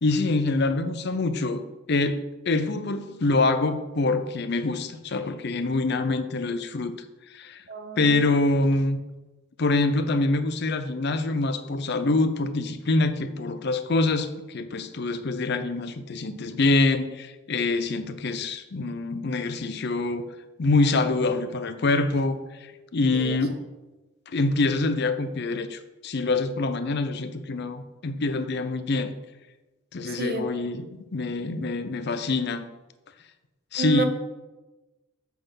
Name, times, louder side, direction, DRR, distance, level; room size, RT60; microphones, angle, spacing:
voice 1, 0.0-6.9 7.3-7.6 8.0-9.0 9.6-20.3 20.6-23.6 24.3-29.1 29.9-30.8 31.1-32.6 33.7-34.1, left 3 dB, 50° left, 10 dB, 0.6 m, -25 dB
voice 2, 7.7-8.3 23.1-23.4 30.1-30.7 33.8-34.1, right 3 dB, 45° right, 7 dB, 0.8 m, -31 dB
8.2 x 4.3 x 5.7 m, 1.1 s
head